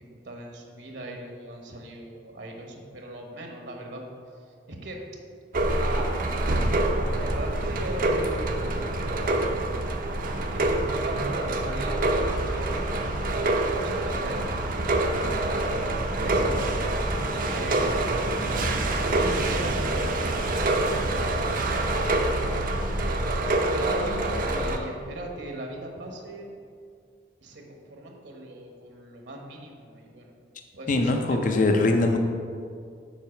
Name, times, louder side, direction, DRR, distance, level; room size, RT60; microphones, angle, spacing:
voice 1, 0.0-4.0 4.7-5.0 5.8-6.1 7.0-8.7 10.3-12.8 13.7-14.4 16.2-16.9 17.5-17.9 18.7-21.4 23.5-26.5 27.4-30.4 30.7-31.5, right 1 dB, 70° right, 1 dB, 1.2 m, -39 dB
sound 1, 5.5-24.8, right 2 dB, 50° right, 0.6 m, -26 dB
voice 2, 30.9-32.2, left 2 dB, 45° left, 4 dB, 0.6 m, -22 dB
7.4 x 4.6 x 5.8 m, 2.3 s
head